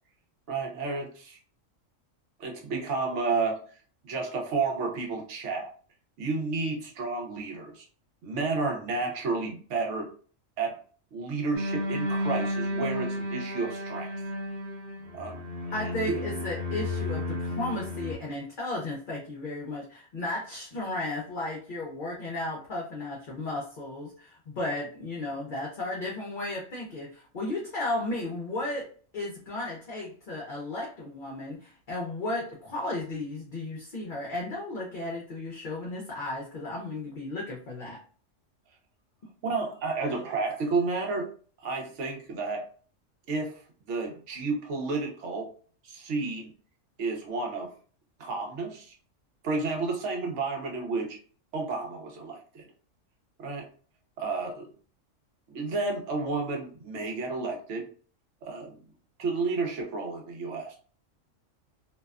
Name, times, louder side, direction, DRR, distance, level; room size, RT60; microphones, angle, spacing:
voice 1, 0.5-1.4 2.4-3.6 4.0-5.7 6.2-7.9 8.2-10.1 10.6-10.8 11.1-14.1 15.1-15.4 15.8-16.1 39.4-41.3 41.6-42.7 43.3-43.6 43.9-45.5 45.8-46.5 47.0-47.7 48.2-48.9 49.4-51.2 51.5-52.7 53.4-53.7 54.2-54.7 55.5-57.9 58.4-58.7 59.2-60.8, right 3 dB, 70° right, 1 dB, 1.0 m, -31 dB
sound 1, 11.5-18.2, left 1 dB, 45° right, 0.7 m, -32 dB
voice 2, 15.7-28.9 29.1-38.0, left 2 dB, 50° left, -3 dB, 0.7 m, -34 dB
2.6 x 2.2 x 2.3 m, 0.42 s
omnidirectional pair, 1.3 m